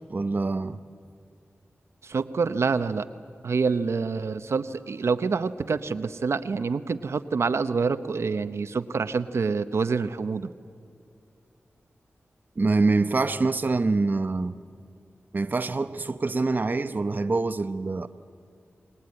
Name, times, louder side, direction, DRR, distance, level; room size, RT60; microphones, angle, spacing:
voice 1, 0.1-0.8 12.6-14.5 15.3-18.1, right 3 dB, 40° right, 0.8 m, -25 dB
voice 2, 2.0-3.1 3.4-10.5, right 5 dB, 75° right, 0.8 m, -27 dB
27.0 x 20.5 x 9.7 m
wide cardioid pair, 80°, 5 cm